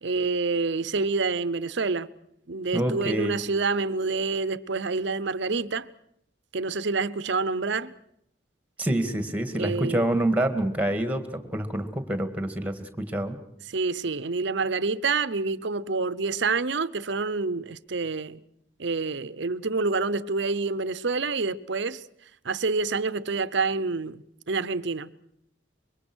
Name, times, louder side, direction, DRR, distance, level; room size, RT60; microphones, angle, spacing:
voice 1, 0.0-2.1 2.5-5.9 6.5-7.9 9.6-10.1 13.7-18.4 18.8-22.0 22.4-25.1, right 4 dB, 65° right, 0.8 m, -27 dB
voice 2, 2.7-3.3 8.8-13.4, right 1 dB, 10° right, 2.0 m, -27 dB
25.0 x 23.0 x 6.3 m
head